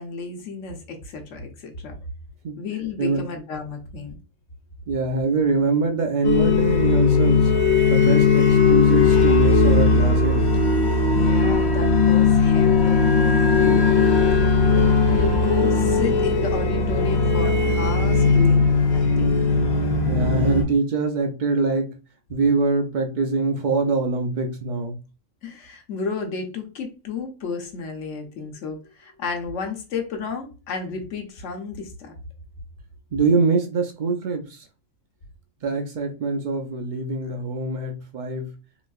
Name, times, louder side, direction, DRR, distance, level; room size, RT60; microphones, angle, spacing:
voice 1, 0.0-1.9 2.6-4.2 11.1-13.1 13.5-13.9 14.8-19.4 25.4-32.1, left 4 dB, 65° left, 1.0 m, -32 dB
voice 2, 4.9-7.5 7.9-10.5 20.0-21.9 22.3-25.0 33.1-34.6 35.6-38.5, right 3 dB, 70° right, 0.4 m, -24 dB
sound 1, 6.2-20.6, left 4 dB, 85° left, 1.2 m, -18 dB
sound 2, 9.1-16.0, equal, 85° right, 1.5 m, -39 dB
3.8 x 2.6 x 2.3 m
omnidirectional pair, 1.4 m